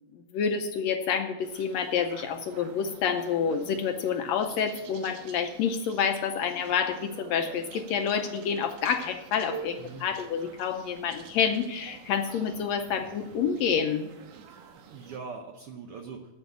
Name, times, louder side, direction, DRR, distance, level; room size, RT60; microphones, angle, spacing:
voice 1, 0.1-14.0, left 7 dB, 75° left, 7 dB, 1.7 m, -28 dB
sound 1, 1.4-15.2, right 6 dB, 90° right, 2.5 m, -47 dB
voice 2, 14.5-16.4, right 5 dB, 70° right, 2 dB, 1.4 m, -42 dB
8.0 x 7.9 x 8.3 m, 0.97 s
omnidirectional pair, 3.5 m